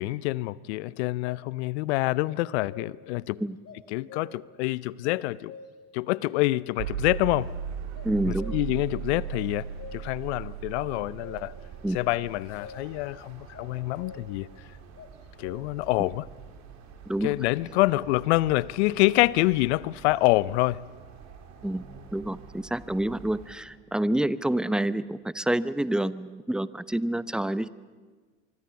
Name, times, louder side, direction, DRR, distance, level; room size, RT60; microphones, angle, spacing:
voice 1, 0.0-3.4 3.9-5.5 5.9-7.5 8.3-9.7 9.9-11.5 11.9-14.5 15.4-16.3 17.2-20.8, left 19 dB, 70° left, 0.7 m, -26 dB
sound 1, 1.2-1.5 2.2-3.2 3.6-4.6 5.0-6.0 7.9-8.9 9.2-10.3 10.8-11.7 12.1-13.0 13.5-14.5 15.0-15.6, left 4 dB, 40° left, 2.8 m, -47 dB
sound 2, 6.8-22.7, right 9 dB, 75° right, 2.0 m, -40 dB
sound 3, 7.0-23.6, right 5 dB, 55° right, 4.1 m, -50 dB
voice 2, 8.0-8.6 11.8-12.0 17.1-17.3 21.6-21.8 22.1-27.7, right 1 dB, ahead, 0.8 m, -28 dB
24.5 x 23.5 x 7.1 m
hypercardioid pair, 75°, 35 cm